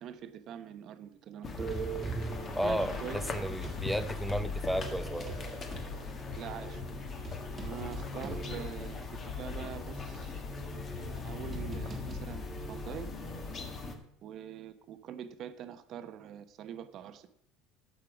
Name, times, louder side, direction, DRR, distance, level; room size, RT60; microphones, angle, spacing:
voice 1, 0.0-1.7 2.6-3.6 6.4-6.8 7.6-10.4 10.9-13.1 14.2-17.3, right 9 dB, 45° right, 11 dB, 0.9 m, -44 dB
sound 1, 1.4-14.0, left 4 dB, 30° left, 1.7 m, -39 dB
sound 2, 1.6-3.9 4.6-9.0 9.4-9.5 10.2-13.7, right 4 dB, 20° right, 1.6 m, -43 dB
voice 2, 2.5-5.3, equal, ahead, 12 dB, 0.6 m, -33 dB
sound 3, 3.0-8.4, left 4 dB, 70° left, 3.9 m, -48 dB
16.5 x 6.5 x 5.0 m, 0.76 s
cardioid pair, 140°, 0 cm